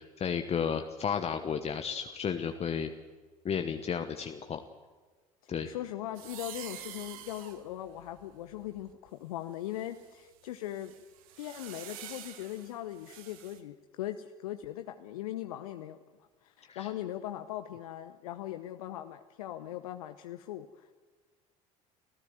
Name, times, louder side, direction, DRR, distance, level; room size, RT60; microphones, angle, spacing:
voice 1, 0.0-2.9 3.4-4.6 5.5-5.7 16.7-16.9, left 7 dB, 35° left, 7 dB, 1.2 m, -33 dB
voice 2, 5.4-10.9 11.4-16.0 16.4-20.9, left 13 dB, 70° left, 8 dB, 0.9 m, -40 dB
sound 1, 6.1-9.1 9.7-13.6, right 11 dB, 70° right, 1.7 m, -48 dB
25.5 x 15.0 x 7.8 m, 1.4 s
figure-of-eight pair, 65°, 19 cm